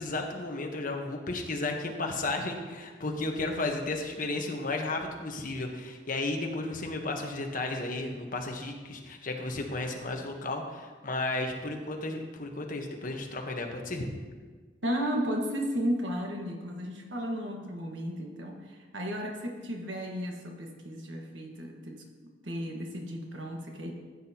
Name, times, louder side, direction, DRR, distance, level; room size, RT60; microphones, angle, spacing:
voice 1, 0.0-14.1, left 2 dB, 50° left, 2 dB, 1.2 m, -33 dB
voice 2, 14.8-22.0 22.4-23.9, equal, 80° right, 2 dB, 1.5 m, -34 dB
14.5 x 8.8 x 2.9 m, 1.4 s
head